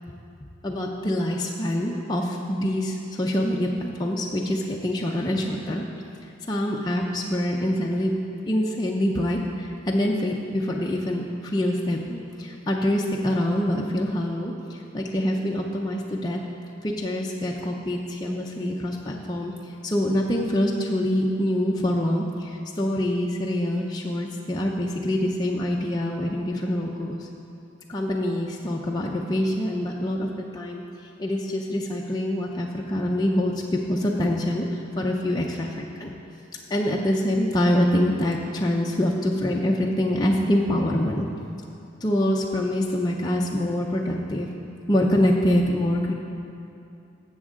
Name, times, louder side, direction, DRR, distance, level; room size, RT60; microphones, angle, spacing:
voice 1, 0.6-5.8 6.5-8.1 8.5-16.4 16.8-27.3 27.9-30.8 31.2-36.1 36.7-41.2 42.0-44.5 44.9-46.1, left 1 dB, 20° left, -2 dB, 0.6 m, -25 dB
15.0 x 7.1 x 3.7 m, 2.7 s
head